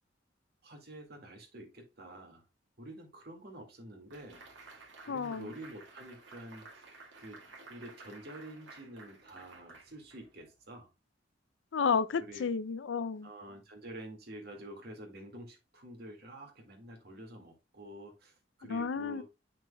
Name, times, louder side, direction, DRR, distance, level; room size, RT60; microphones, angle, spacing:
voice 1, 0.6-2.5 2.8-4.4 5.1-10.9 12.2-12.5 13.2-19.2, right 1 dB, 60° right, 2.1 m, -48 dB
sound 1, 4.1-10.6, right 3 dB, 75° right, 2.0 m, -54 dB
voice 2, 5.1-5.5 11.7-13.3 18.7-19.2, left 5 dB, 80° left, 0.5 m, -31 dB
7.8 x 6.0 x 2.3 m
head